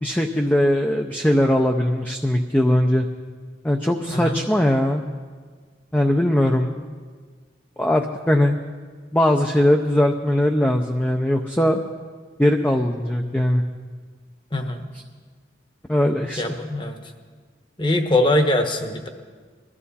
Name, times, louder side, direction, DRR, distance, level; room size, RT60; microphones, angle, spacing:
voice 1, 0.0-3.1 3.6-5.0 5.9-6.9 7.8-8.6 9.1-11.8 12.4-13.6 15.9-16.4, left 1 dB, 10° left, 3 dB, 0.6 m, -20 dB
voice 2, 4.1-4.4 14.5-14.9 16.4-16.9 17.8-19.1, left 1 dB, 25° left, 6 dB, 1.1 m, -22 dB
21.5 x 13.5 x 4.2 m, 1.6 s
head